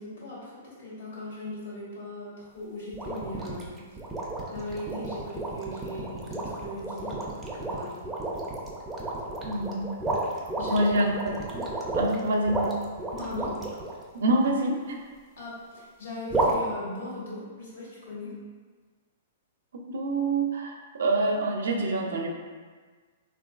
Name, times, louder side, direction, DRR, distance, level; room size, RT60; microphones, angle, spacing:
voice 1, 0.0-3.8 4.5-8.0 10.6-11.0 13.1-13.6 15.4-18.4, left 1 dB, 75° left, -6 dB, 1.3 m, -38 dB
sound 1, 2.9-13.9 16.3-16.5, right 2 dB, 10° right, 0.4 m, -31 dB
voice 2, 9.4-9.9 10.7-11.1 11.5-11.7 11.9-12.6 14.1-15.0 19.7-22.4, right 2 dB, 80° right, 1 dB, 0.5 m, -26 dB
3.0 x 2.4 x 2.4 m, 1.5 s
hypercardioid pair, 145°, 0 cm